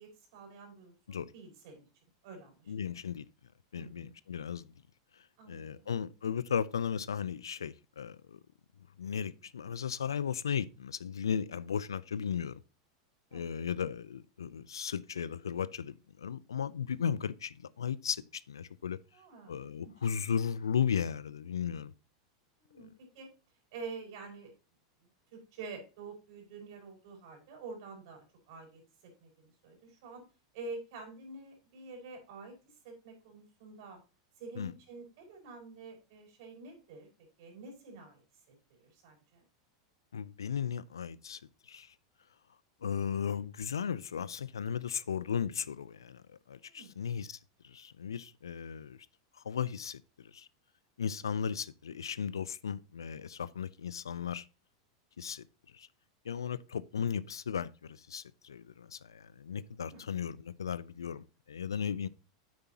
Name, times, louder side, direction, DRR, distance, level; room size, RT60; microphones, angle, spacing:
voice 1, 0.0-1.9 2.2-2.7 3.7-4.1 5.4-5.9 13.3-13.7 19.1-19.9 22.6-23.3 23.7-24.5 25.3-28.8 29.2-30.2 30.5-32.6 32.8-34.0 34.4-37.1 37.4-38.2 38.5-39.5 46.7-46.9 59.8-60.1, right 3 dB, 60° right, 5.5 m, -48 dB
voice 2, 2.7-3.2 3.7-4.7 5.5-8.4 9.0-12.6 13.3-19.0 19.5-21.9 34.6-34.7 40.1-41.4 41.7-41.9 42.8-47.4 47.6-49.0 49.4-50.0 50.3-50.5 51.0-54.5 55.2-55.4 55.7-55.9 56.2-62.1, left 7 dB, 85° left, 0.5 m, -36 dB
9.6 x 8.2 x 2.9 m
hypercardioid pair, 95°, 2 cm